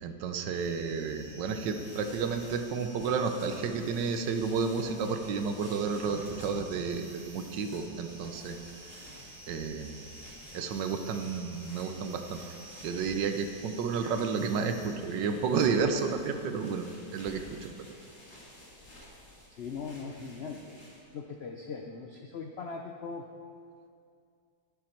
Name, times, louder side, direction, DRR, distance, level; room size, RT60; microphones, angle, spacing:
voice 1, 0.0-8.6 9.5-10.0 10.5-12.4 12.8-16.8 17.1-17.7, right 5 dB, 80° right, 7 dB, 1.5 m, -31 dB
sound 1, 0.5-15.0, right 2 dB, 25° right, 0.6 m, -50 dB
sound 2, 1.6-21.2, left 1 dB, 40° left, 2.5 m, -52 dB
voice 2, 19.5-20.8 21.1-23.3, left 5 dB, 70° left, 2 dB, 0.6 m, -40 dB
11.5 x 10.5 x 4.5 m, 2.4 s
omnidirectional pair, 1.9 m